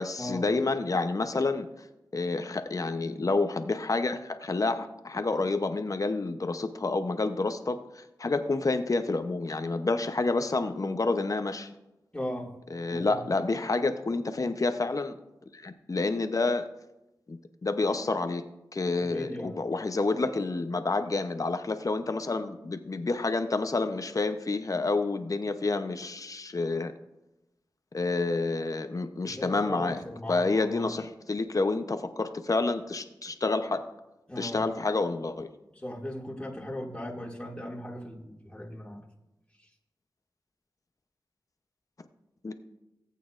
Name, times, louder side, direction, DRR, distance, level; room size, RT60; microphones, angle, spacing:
voice 1, 0.0-1.7 2.1-11.7 12.7-15.2 15.5-16.6 17.3-18.4 18.7-26.9 27.9-30.0 30.3-33.9 34.4-35.5 42.4-42.5, left 3 dB, 45° left, 9 dB, 0.8 m, -29 dB
voice 2, 12.1-12.5 12.9-13.3 19.0-19.6 29.2-30.9 34.3-34.6 35.8-39.0 39.6-39.7, left 1 dB, 15° left, -2 dB, 2.3 m, -38 dB
18.0 x 8.5 x 2.5 m, 0.95 s
cardioid pair, 50°, 8 cm